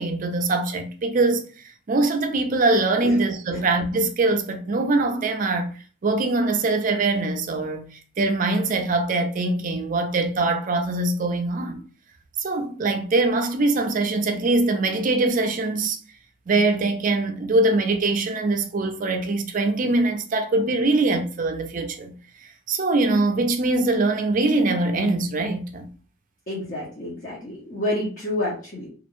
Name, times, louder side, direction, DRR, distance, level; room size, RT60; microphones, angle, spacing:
voice 1, 0.0-5.7 6.0-7.9 8.2-11.8 12.4-16.0 16.5-22.1 22.4-25.9, right 2 dB, 40° right, 0.4 m, -23 dB
voice 2, 26.5-28.9, left 1 dB, 40° left, 0.6 m, -29 dB
2.4 x 2.1 x 2.9 m
head